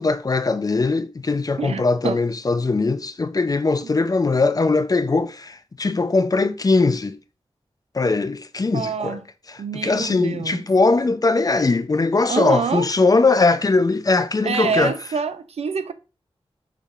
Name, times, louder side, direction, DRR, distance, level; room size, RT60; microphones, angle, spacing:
voice 1, 0.0-7.2 7.9-9.2 9.8-14.9, left 3 dB, 35° left, 0.5 m, -20 dB
voice 2, 1.6-2.2 3.8-3.9 8.7-9.2 9.6-10.6 12.3-12.9 14.4-15.9, right 6 dB, 90° right, 0.4 m, -26 dB
6.4 x 3.5 x 2.4 m
wide cardioid pair, 80°, 10 cm